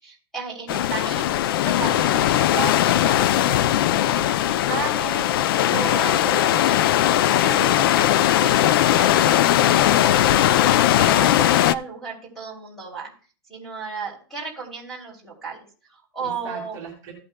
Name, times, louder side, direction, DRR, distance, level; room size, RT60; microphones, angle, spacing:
voice 1, 0.0-6.5 7.4-13.1 13.5-16.8, right 4 dB, 5° left, -3 dB, 2.9 m, -34 dB
sound 1, 0.7-11.7, left 12 dB, 60° left, 0.4 m, -19 dB
voice 2, 5.7-7.4 16.2-17.1, right 6 dB, 25° right, -2 dB, 2.1 m, -39 dB
15.0 x 8.6 x 2.2 m, 0.38 s
supercardioid pair, 180°, 13 cm